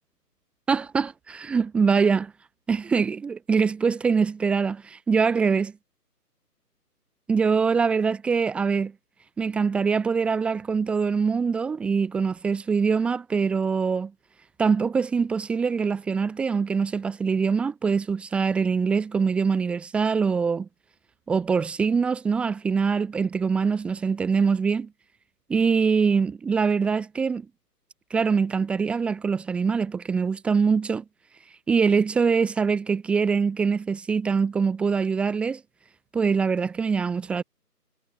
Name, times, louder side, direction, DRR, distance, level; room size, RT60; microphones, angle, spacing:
voice 1, 0.7-2.3 2.7-5.7 7.3-8.9 9.4-14.1 14.6-20.7 21.3-24.9 25.5-27.4 28.1-31.0 31.7-35.6 36.1-37.4, right 5 dB, ahead, 4.5 m, -23 dB
figure-of-eight pair, 170°, 48 cm